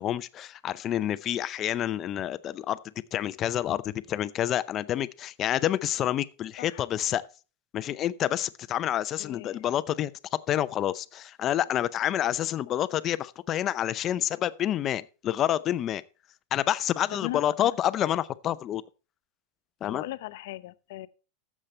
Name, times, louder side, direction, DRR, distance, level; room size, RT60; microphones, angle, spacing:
voice 1, 0.0-2.8 3.1-7.2 7.7-16.0 16.5-18.8 19.8-20.0, left 11 dB, 35° left, 0.6 m, -28 dB
voice 2, 9.2-9.6 17.1-17.8 19.8-21.1, left 17 dB, 75° left, 0.6 m, -38 dB
11.5 x 7.4 x 4.3 m
supercardioid pair, 125°, 0 cm